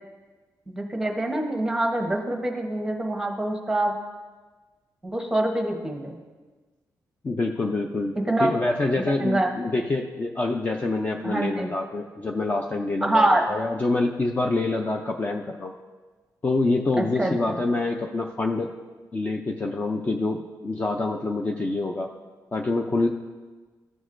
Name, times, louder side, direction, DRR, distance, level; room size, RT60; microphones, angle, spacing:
voice 1, 0.7-3.9 5.0-6.2 8.1-8.5 9.2-9.5 11.2-11.7 13.0-13.4 17.0-17.6, right 1 dB, 5° right, 2 dB, 0.9 m, -25 dB
voice 2, 7.2-8.1 8.4-15.7 16.4-18.7 19.1-22.1 22.5-23.1, left 2 dB, 20° left, 2 dB, 0.4 m, -26 dB
15.0 x 6.2 x 2.5 m, 1.3 s
wide cardioid pair, 165°, 7 cm